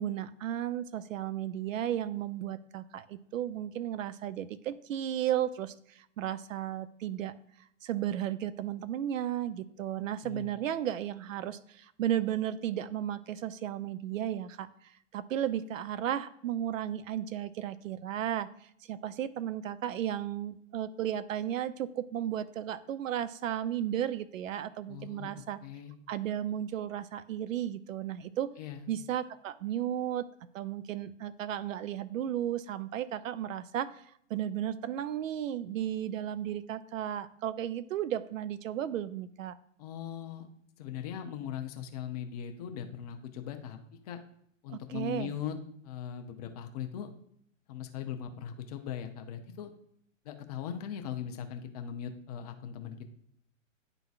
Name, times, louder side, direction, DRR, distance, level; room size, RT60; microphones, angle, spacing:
voice 1, 0.0-7.3 7.8-18.5 18.9-25.6 26.1-28.5 28.9-30.3 30.5-34.0 34.3-39.6 44.7-45.3, right 11 dB, 75° right, 16 dB, 0.6 m, -34 dB
voice 2, 24.9-25.3 25.6-25.9 28.6-28.9 39.8-40.5 40.8-43.8 44.0-44.2 44.6-45.6 45.8-47.1 47.7-49.7 50.2-53.0, left 9 dB, 30° left, 6 dB, 0.6 m, -39 dB
10.5 x 3.9 x 2.4 m, 0.70 s
hypercardioid pair, 140°, 39 cm